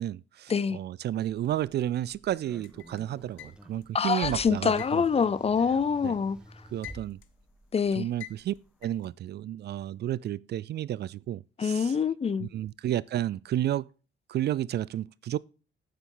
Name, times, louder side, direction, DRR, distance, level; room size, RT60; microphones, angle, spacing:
voice 1, 0.0-5.0 6.0-6.2 6.7-7.2 8.0-8.5 8.8-12.0 12.4-13.9 14.3-15.4, right 12 dB, 55° right, 0.4 m, -31 dB
Car, 1.3-8.9, right 1 dB, 5° right, 1.3 m, -50 dB
sound 1, 2.6-3.9 4.8-6.2 6.5-7.4 8.2-9.1, left 12 dB, 80° left, 1.0 m, -46 dB
voice 2, 3.9-6.4 7.7-8.1 11.6-12.5, left 6 dB, 30° left, 0.6 m, -25 dB
9.0 x 8.0 x 3.9 m
cardioid pair, 90°, 20 cm